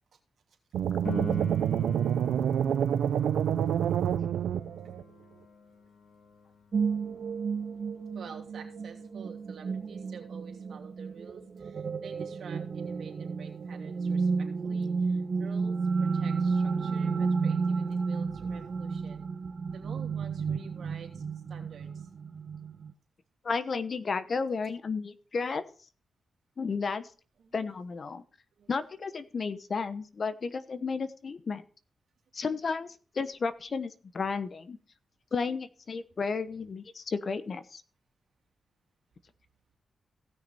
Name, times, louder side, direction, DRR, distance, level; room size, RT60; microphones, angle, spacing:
sound 1, 0.7-5.0, right 9 dB, 90° right, 0.5 m, -27 dB
Piano, 1.0-11.4 19.0-19.1, left 5 dB, 75° left, 1.6 m, -47 dB
sound 2, 6.7-22.9, right 5 dB, 60° right, 1.1 m, -32 dB
voice 1, 8.1-19.2 19.7-22.1 27.4-27.6 28.5-28.7, right 6 dB, 75° right, 1 dB, 2.9 m, -49 dB
voice 2, 23.4-25.6 26.6-27.1 27.5-28.2 28.7-31.6 32.3-34.8 35.3-37.8, left 4 dB, 55° left, 12 dB, 1.0 m, -33 dB
16.5 x 6.3 x 4.2 m, 0.39 s
cardioid pair, 65°, 0 cm